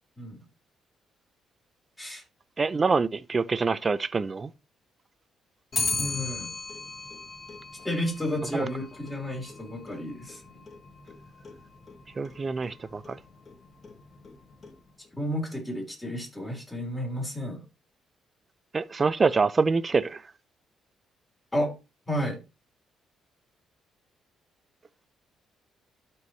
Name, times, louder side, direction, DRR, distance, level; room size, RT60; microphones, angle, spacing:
voice 1, 2.6-4.5 8.5-8.6 12.2-13.2 18.7-20.2, right 4 dB, 35° right, 0.6 m, -25 dB
Clock, 5.7-15.1, left 3 dB, 40° left, 1.8 m, -38 dB
voice 2, 5.9-6.5 7.8-10.6 15.2-17.6 21.5-21.7 22.1-22.4, equal, 15° left, 4.6 m, -32 dB
12.5 x 4.7 x 3.3 m
cardioid pair, 90°, 0 cm